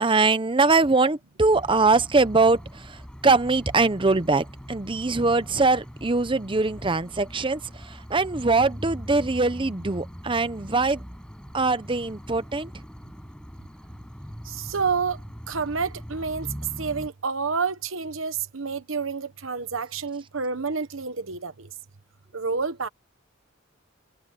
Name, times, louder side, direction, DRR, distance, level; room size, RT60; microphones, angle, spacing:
voice 1, 0.0-11.0 11.5-12.7, right 3 dB, 25° right, 0.8 m, -22 dB
sound 1, 1.5-17.1, equal, 5° left, 6.2 m, -41 dB
voice 2, 14.5-15.2 15.5-16.5 16.8-21.7 22.3-22.9, right 5 dB, 80° right, 1.2 m, -29 dB
head